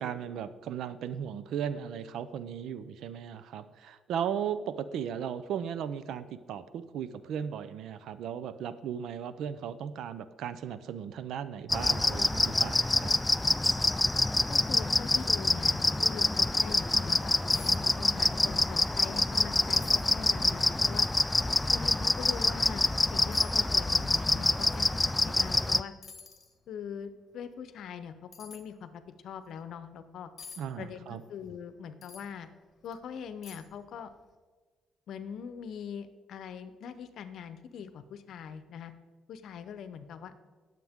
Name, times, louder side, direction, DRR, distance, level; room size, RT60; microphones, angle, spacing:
voice 1, 0.0-13.1 30.6-31.2, right 8 dB, 80° right, 14 dB, 0.6 m, -36 dB
sound 1, 11.7-25.8, left 2 dB, 15° left, 0.4 m, -26 dB
voice 2, 14.5-21.1 21.7-25.9 26.7-30.3 30.8-32.5 32.8-34.1 35.1-38.9 39.3-40.4, left 7 dB, 75° left, 11 dB, 0.8 m, -42 dB
sound 2, 17.5-17.8 18.1-18.6 19.0-19.1 19.7-20.2 20.8-20.9 22.4-22.5 23.3-23.6 25.5-25.6 26.0-26.5 28.3-28.6 30.4-30.6 32.0-32.3 32.8-32.9 33.4-33.8 34.1-34.2, left 5 dB, 50° left, 1.5 m, -48 dB
19.0 x 7.5 x 3.6 m, 1.4 s
cardioid pair, 90°, 0 cm